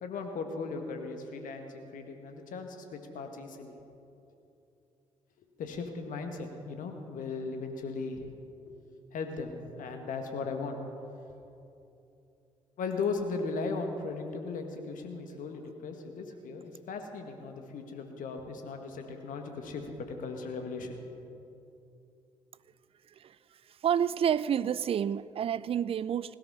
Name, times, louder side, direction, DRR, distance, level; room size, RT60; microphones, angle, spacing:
voice 1, 0.0-3.7 5.4-8.3 9.1-10.8 12.8-21.0, left 4 dB, 60° left, 5 dB, 1.6 m, -37 dB
voice 2, 23.8-26.4, right 9 dB, 40° right, 18 dB, 0.4 m, -29 dB
16.5 x 12.5 x 5.5 m, 2.8 s
figure-of-eight pair, 40°, 15 cm